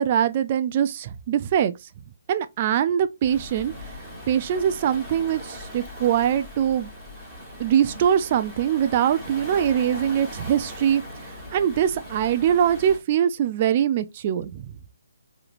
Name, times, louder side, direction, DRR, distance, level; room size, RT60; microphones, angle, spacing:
voice 1, 0.0-1.7 2.3-3.7 4.3-6.9 7.6-11.0 11.5-14.7, right 9 dB, 35° right, 0.4 m, -22 dB
Waves surf, 3.2-13.0, equal, ahead, 2.5 m, -39 dB
4.8 x 3.1 x 2.5 m
hypercardioid pair, 155°, 0 cm